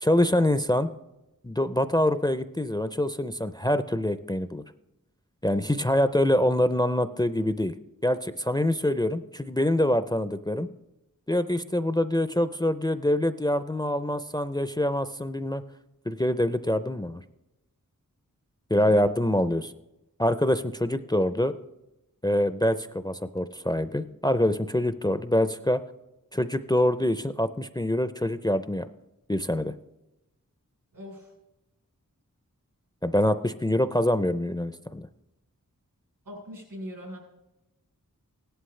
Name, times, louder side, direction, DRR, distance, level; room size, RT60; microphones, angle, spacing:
voice 1, 0.0-0.9 1.4-4.6 5.4-7.7 8.0-10.7 11.3-15.6 16.1-17.2 18.7-19.7 20.2-21.6 22.2-25.8 26.3-28.9 29.3-29.7 33.0-35.1, left 1 dB, 10° left, 12 dB, 0.5 m, -25 dB
voice 2, 30.9-31.3 36.2-37.2, left 1 dB, 85° right, 0 dB, 4.4 m, -40 dB
16.5 x 11.5 x 3.2 m, 0.95 s
wide cardioid pair, 45°, 33 cm